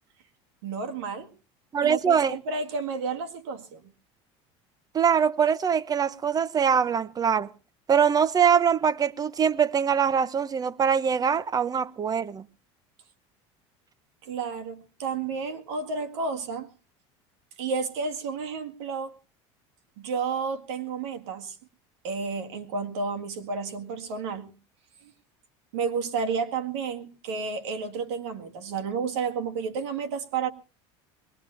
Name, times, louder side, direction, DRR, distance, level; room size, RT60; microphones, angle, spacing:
voice 1, 0.6-1.3 1.8-3.8 14.2-16.7 17.6-19.1 20.0-21.6 22.0-24.5 25.7-30.5, right 5 dB, 85° right, 1.9 m, -31 dB
voice 2, 1.7-2.4 4.9-7.5 7.9-12.4, right 7 dB, 25° right, 0.8 m, -23 dB
22.0 x 19.5 x 2.5 m
supercardioid pair, 110°, 14 cm